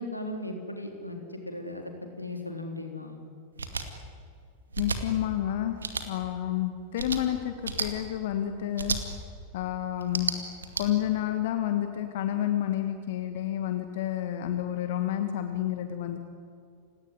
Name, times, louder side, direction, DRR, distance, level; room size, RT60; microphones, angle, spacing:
voice 1, 0.0-1.9 2.2-3.2, left 1 dB, 90° left, 3 dB, 3.7 m, -37 dB
sound 1, 3.6-3.8 4.7-5.0 5.8-6.0 6.9-7.2 7.6-7.9 8.8-9.0 10.0-10.8, right 5 dB, 75° right, 2.3 m, -31 dB
voice 2, 4.8-5.8 6.1-9.0 9.5-10.3 10.8-16.2, left 12 dB, 55° left, 7 dB, 1.8 m, -29 dB
29.5 x 18.0 x 9.8 m, 2.3 s
figure-of-eight pair, 90°, 0 cm